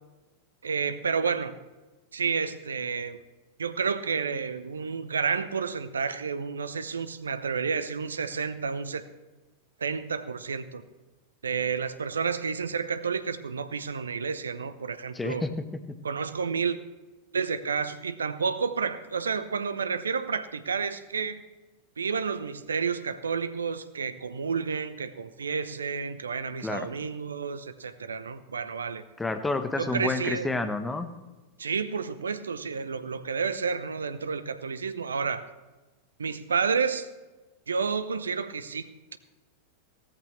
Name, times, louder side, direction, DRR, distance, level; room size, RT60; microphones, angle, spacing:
voice 1, 0.6-1.5 2.1-3.2 3.6-9.0 9.8-10.8 11.4-15.4 16.0-16.8 17.3-21.4 22.0-29.0 29.8-30.5 31.6-35.5 36.2-37.1 37.7-38.9, right 5 dB, 70° right, 13 dB, 0.8 m, -30 dB
voice 2, 15.1-15.6 26.6-26.9 29.2-31.1, left 2 dB, 10° left, 9 dB, 1.1 m, -29 dB
16.5 x 14.0 x 3.2 m, 1.2 s
figure-of-eight pair, 90°, 0 cm